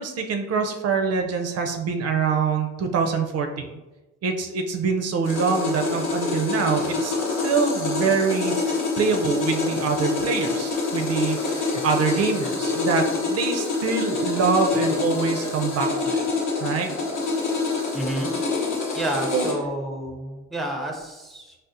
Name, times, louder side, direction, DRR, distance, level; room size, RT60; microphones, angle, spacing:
voice 1, 0.0-3.7 4.2-7.1 7.4-16.2 16.6-16.9 19.3-19.5, right 5 dB, 55° right, 4 dB, 0.4 m, -25 dB
sound 1, 5.2-19.5, left 3 dB, 80° left, 0.8 m, -26 dB
voice 2, 17.9-18.3 18.9-21.6, right 1 dB, ahead, 1 dB, 0.5 m, -30 dB
4.1 x 2.0 x 2.4 m, 1.1 s
cardioid pair, 90°, 30 cm